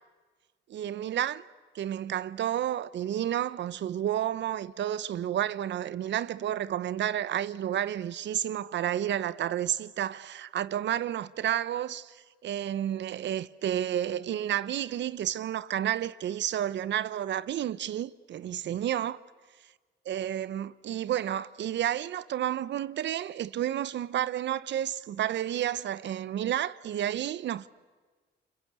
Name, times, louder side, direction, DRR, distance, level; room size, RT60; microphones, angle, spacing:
voice 1, 0.7-1.4 1.7-19.2 20.1-27.7, right 11 dB, 65° right, 0.8 m, -31 dB
28.5 x 25.5 x 8.1 m
cardioid pair, 90°, 20 cm